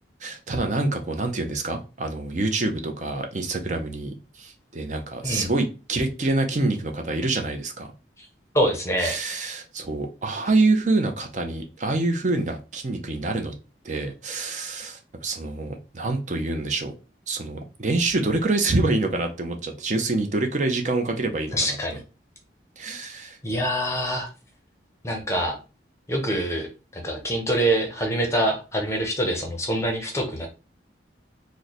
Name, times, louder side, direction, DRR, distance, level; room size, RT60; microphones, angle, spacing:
voice 1, 0.2-7.9 9.0-13.5 13.8-16.9 17.3-21.8 22.8-23.4, right 2 dB, 40° right, 4 dB, 0.6 m, -26 dB
voice 2, 8.5-9.2 21.5-22.0 23.4-24.3 25.0-25.6 26.1-26.7 26.9-30.5, right 1 dB, 15° left, 3 dB, 0.7 m, -25 dB
3.1 x 2.1 x 4.0 m, 0.31 s
head